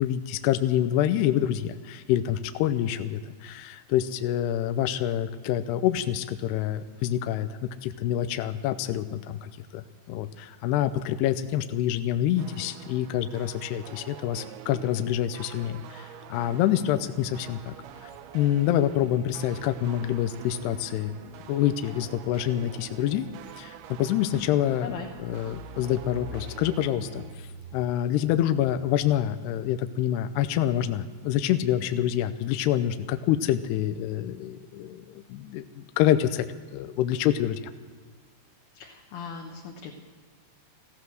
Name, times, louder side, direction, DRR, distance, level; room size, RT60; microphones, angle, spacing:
voice 1, 0.0-7.5 7.8-17.7 18.3-21.2 21.5-23.3 23.6-24.9 25.2-27.2 27.7-37.7, left 11 dB, 85° left, 10 dB, 2.4 m, -27 dB
sound 1, 12.4-27.4, right 11 dB, 80° right, 2.3 m, -46 dB
sound 2, 17.7-29.3, left 1 dB, 25° right, 2.4 m, -49 dB
voice 2, 38.7-39.9, left 6 dB, 70° left, 0 dB, 2.7 m, -38 dB
15.0 x 15.0 x 6.3 m, 1.5 s
omnidirectional pair, 5.4 m